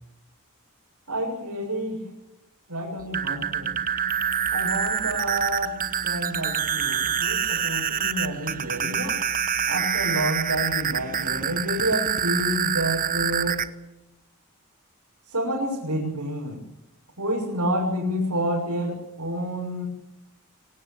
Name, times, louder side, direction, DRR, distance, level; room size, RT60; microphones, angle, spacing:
voice 1, 1.1-2.0 2.7-3.8 4.5-5.7 6.0-9.1 9.7-13.6 15.3-16.6 17.2-19.9, equal, 85° right, -3 dB, 7.1 m, -29 dB
sound 1, 3.0-13.7, right 8 dB, 40° right, 1.2 m, -26 dB
25.0 x 18.0 x 7.6 m, 0.86 s
head